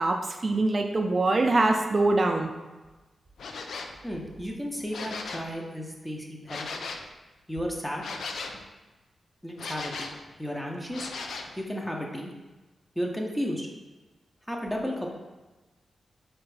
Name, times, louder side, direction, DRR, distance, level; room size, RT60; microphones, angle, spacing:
voice 1, 0.0-2.5, right 2 dB, 45° right, 4 dB, 0.4 m, -24 dB
sound 1, 3.4-4.0 4.8-5.5 6.5-7.1 8.0-8.6 9.6-10.2 10.9-11.6, left 4 dB, 85° left, 0.3 m, -37 dB
voice 2, 4.0-6.8 7.5-8.0 9.4-10.1 10.4-11.1 11.6-12.3 13.0-13.7 14.5-15.1, equal, 5° left, 0 dB, 0.6 m, -33 dB
4.5 x 2.5 x 3.2 m, 1.2 s
cardioid pair, 60°, 0 cm